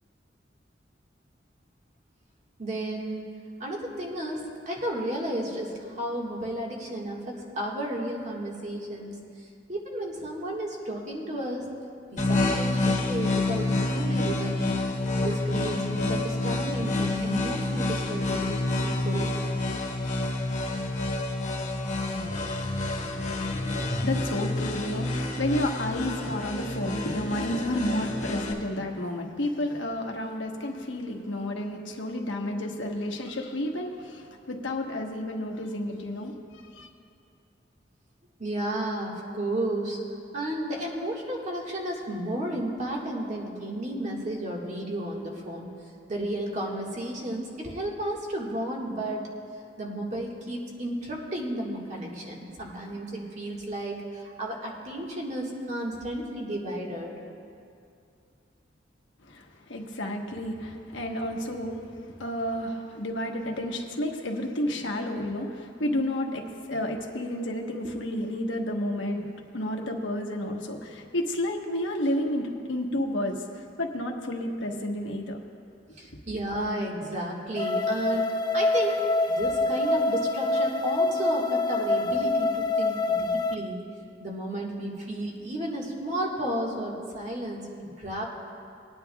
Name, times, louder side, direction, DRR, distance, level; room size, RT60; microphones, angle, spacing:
voice 1, 2.6-3.3 3.6-11.6 12.1-14.8 15.2-19.4 38.4-40.0 40.3-45.7 46.1-49.3 49.8-57.1 76.0-79.0 79.3-83.8 84.2-88.3, right 1 dB, 40° right, -2 dB, 1.6 m, -33 dB
sound 1, 12.2-28.5, left 2 dB, 40° left, 1.3 m, -28 dB
voice 2, 22.5-36.9 59.2-69.2 69.5-75.4, left 1 dB, 90° left, 1 dB, 1.2 m, -31 dB
sound 2, 77.6-83.5, left 2 dB, 25° left, 0.3 m, -26 dB
21.0 x 9.7 x 2.3 m, 2.4 s
head